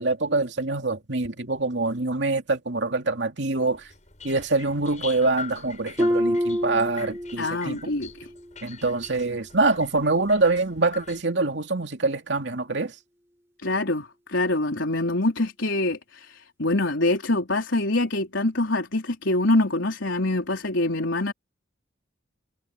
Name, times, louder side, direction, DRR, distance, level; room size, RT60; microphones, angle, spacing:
voice 1, 0.0-3.8 4.2-7.9 8.6-12.9, right 3 dB, 70° right, 2.7 m, -25 dB
sound 1, 3.7-11.2, left 6 dB, 40° left, 7.7 m, -43 dB
Harp, 6.0-7.8 8.1-8.5 9.1-9.2, equal, 15° right, 1.3 m, -26 dB
voice 2, 7.4-8.3 13.6-21.3, left 2 dB, 85° left, 3.9 m, -25 dB
head